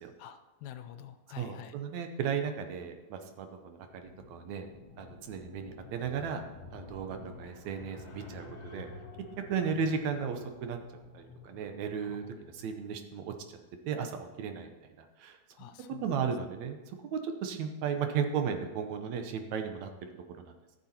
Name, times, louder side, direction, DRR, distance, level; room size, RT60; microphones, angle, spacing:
voice 1, 0.2-1.7 12.0-12.2 15.6-16.0, left 10 dB, 80° left, 9 dB, 1.9 m, -47 dB
voice 2, 1.4-4.7 5.0-6.4 6.7-8.5 8.7-8.9 9.5-10.8 11.1-12.2 12.5-13.3 13.9-14.7 15.2-15.7 16.0-16.8 17.0-19.9, right 6 dB, 75° right, 6 dB, 2.1 m, -35 dB
sound 1, 3.9-12.7, left 3 dB, 45° left, 2.7 m, -50 dB
14.0 x 6.9 x 4.3 m, 1.1 s
omnidirectional pair, 3.4 m